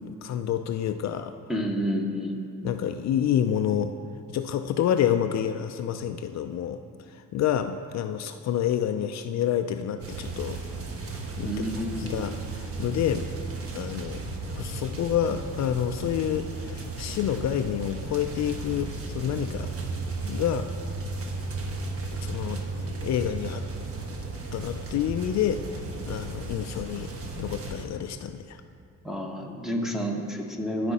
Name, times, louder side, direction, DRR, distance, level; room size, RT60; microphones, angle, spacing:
voice 1, 0.0-1.4 2.6-4.0 4.3-6.8 7.3-10.6 11.4-13.3 13.7-14.2 14.5-19.7 20.3-20.7 22.2-22.6 23.0-23.6 24.5-25.6 26.1-27.1 27.4-28.6, left 10 dB, 60° left, 8 dB, 0.5 m, -28 dB
voice 2, 1.5-2.4 11.4-12.3 29.0-30.9, equal, ahead, 1 dB, 1.3 m, -29 dB
sound 1, 10.0-27.8, right 3 dB, 50° right, 1.2 m, -35 dB
15.0 x 5.1 x 4.2 m, 2.5 s
cardioid pair, 90°, 30 cm